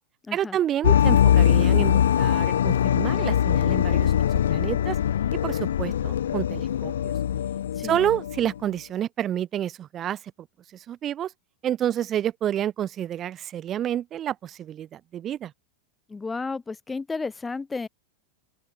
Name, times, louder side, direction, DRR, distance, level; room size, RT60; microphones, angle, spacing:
voice 1, 0.3-4.1 4.5-5.0 5.4-7.1 7.8-10.2 10.7-11.3 11.6-15.5, right 11 dB, 30° right, 3.3 m, -29 dB
sound 1, 0.8-8.6, left 10 dB, 65° left, 0.5 m, -22 dB
voice 2, 16.1-17.9, left 4 dB, 10° left, 2.2 m, -32 dB
open air
figure-of-eight pair, 90°, 0 cm